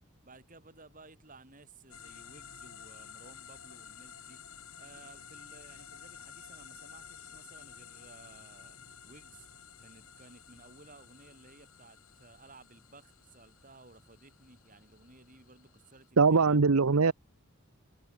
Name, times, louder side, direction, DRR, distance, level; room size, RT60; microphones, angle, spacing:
voice 1, 0.2-4.4 4.8-9.5 9.8-16.6, right 3 dB, 40° right, 7.6 m, -56 dB
sound 1, 1.9-16.1, left 8 dB, 75° left, 7.9 m, -52 dB
voice 2, 16.2-17.1, right 4 dB, 80° right, 0.8 m, -22 dB
head